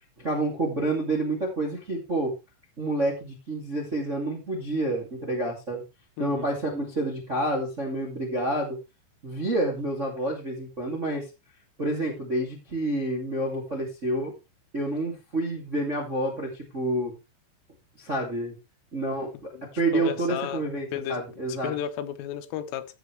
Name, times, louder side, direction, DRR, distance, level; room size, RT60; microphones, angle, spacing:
voice 1, 0.2-2.3 2.8-5.8 6.2-8.8 9.2-11.2 11.8-14.3 14.7-17.1 18.0-18.5 18.9-19.3 19.7-21.7, right 1 dB, 30° right, 1.3 m, -28 dB
voice 2, 19.9-20.7 20.9-21.2 21.6-22.9, left 11 dB, 80° left, 3.6 m, -32 dB
15.0 x 7.9 x 3.3 m
omnidirectional pair, 5.8 m